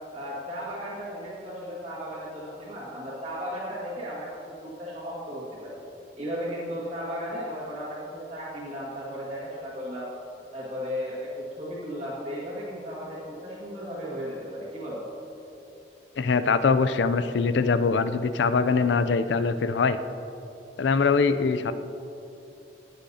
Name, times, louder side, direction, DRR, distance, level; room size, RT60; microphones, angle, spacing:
voice 1, 0.1-5.8 6.2-10.1 10.5-15.0, equal, 35° right, -9 dB, 1.8 m, -35 dB
voice 2, 16.2-20.0 20.8-21.7, left 4 dB, 80° left, 12 dB, 0.4 m, -23 dB
17.5 x 6.4 x 2.8 m, 2.9 s
head